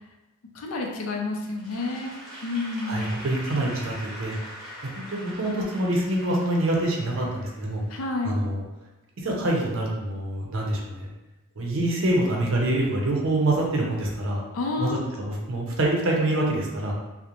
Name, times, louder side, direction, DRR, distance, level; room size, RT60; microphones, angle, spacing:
voice 1, 0.5-2.1 2.4-3.1 7.9-8.4 14.5-15.1, left 3 dB, 75° left, 1 dB, 0.4 m, -29 dB
Applause / Crowd, 1.6-8.0, equal, ahead, 0.8 m, -42 dB
voice 2, 2.8-4.3 4.8-7.8 8.2-8.6 9.2-11.1 11.6-14.4 14.8-16.9, right 1 dB, 60° right, -1 dB, 0.5 m, -26 dB
2.4 x 2.1 x 2.9 m, 1.0 s
head